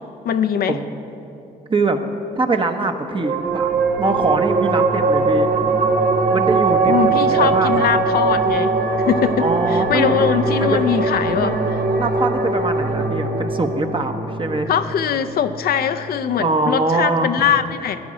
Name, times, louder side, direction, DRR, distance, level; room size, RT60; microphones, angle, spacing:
voice 1, 0.2-0.8 6.9-8.7 9.1-11.8 14.7-18.0, left 8 dB, 70° left, 10 dB, 0.5 m, -21 dB
voice 2, 2.4-3.7 4.0-5.5 6.3-7.9 9.4-10.3 10.6-10.9 11.4-11.7 12.0-14.7 16.4-17.5, right 3 dB, 30° right, 5 dB, 1.1 m, -23 dB
sound 1, 3.2-16.1, right 3 dB, 60° right, 1.1 m, -20 dB
14.0 x 10.0 x 5.0 m, 2.8 s
cardioid pair, 65°, 16 cm